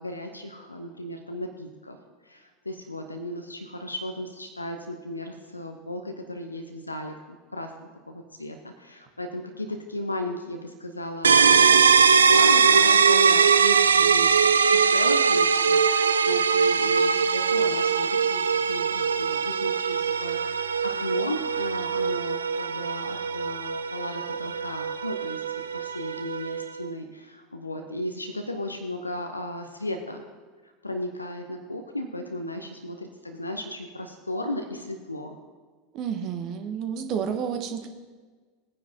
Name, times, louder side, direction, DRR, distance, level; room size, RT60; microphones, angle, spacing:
voice 1, 0.0-2.0 2.2-25.4 25.7-30.2 30.6-35.4, left 1 dB, 85° left, 5 dB, 0.8 m, -35 dB
sound 1, 11.2-26.8, right 6 dB, 75° right, 0.4 m, -21 dB
voice 2, 35.9-37.9, right 7 dB, 40° right, 6 dB, 1.3 m, -30 dB
19.5 x 9.7 x 2.9 m, 1.4 s
figure-of-eight pair, 80°, 0 cm